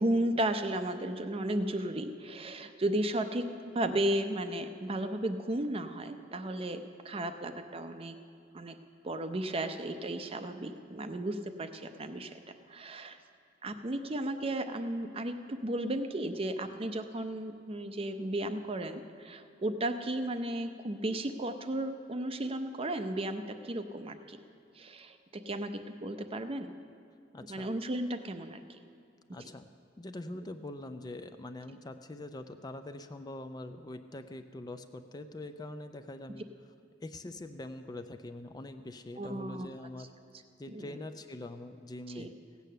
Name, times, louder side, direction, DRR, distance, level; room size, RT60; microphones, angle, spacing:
voice 1, 0.0-8.2 8.5-8.7 9.0-12.4 12.7-13.2 13.6-24.4 24.7-25.2 25.5-25.7 26.0-26.7 27.5-28.8 39.2-39.7 40.7-41.0 42.2-42.3, right 1 dB, 30° right, 9 dB, 0.6 m, -34 dB
voice 2, 27.3-27.7 29.3-29.7 30.0-36.5 37.0-40.1 40.6-42.3, left 2 dB, 20° left, 8 dB, 0.4 m, -43 dB
16.0 x 8.4 x 6.7 m, 2.3 s
head